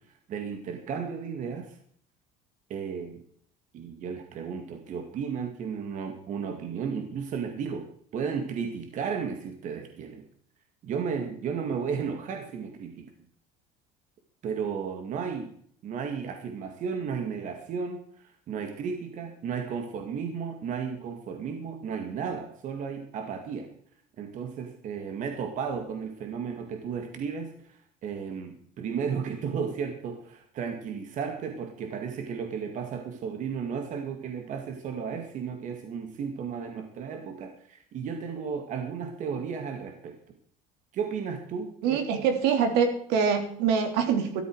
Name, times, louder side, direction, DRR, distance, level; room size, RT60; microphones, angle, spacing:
voice 1, 0.3-1.8 2.7-3.2 3.7-7.9 8.1-10.2 10.8-13.1 14.4-15.5 15.8-18.0 18.5-23.7 24.2-40.1 40.9-42.3, right 6 dB, 45° right, 5 dB, 2.3 m, -34 dB
voice 2, 41.8-44.4, right 6 dB, 75° right, 6 dB, 3.2 m, -24 dB
13.5 x 13.5 x 4.8 m, 0.62 s
cardioid pair, 135°, 17 cm